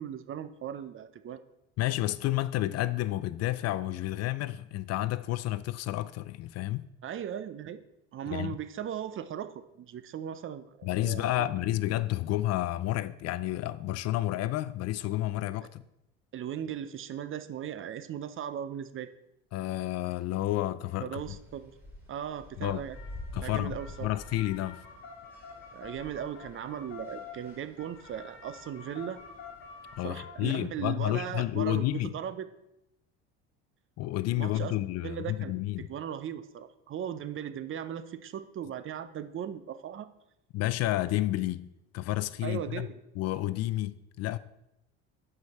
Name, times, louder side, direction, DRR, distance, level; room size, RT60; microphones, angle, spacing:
voice 1, 0.0-1.4 7.0-7.8 8.1-11.5 16.3-19.1 21.0-21.7 22.1-23.0 23.4-24.1 25.7-29.2 30.0-32.5 34.4-34.7 35.0-40.1 42.4-43.0, right 9 dB, 40° right, 0.6 m, -38 dB
voice 2, 1.8-6.9 8.3-8.6 10.8-15.8 19.5-21.4 22.6-22.8 23.3-24.8 30.0-32.1 34.0-35.9 40.5-42.9 43.2-44.4, left 15 dB, 50° left, 0.4 m, -30 dB
sound 1, 21.1-30.1, left 1 dB, 5° right, 3.1 m, -49 dB
sound 2, 22.9-30.5, left 5 dB, 35° left, 2.5 m, -48 dB
11.0 x 5.0 x 4.2 m
supercardioid pair, 95°, 32 cm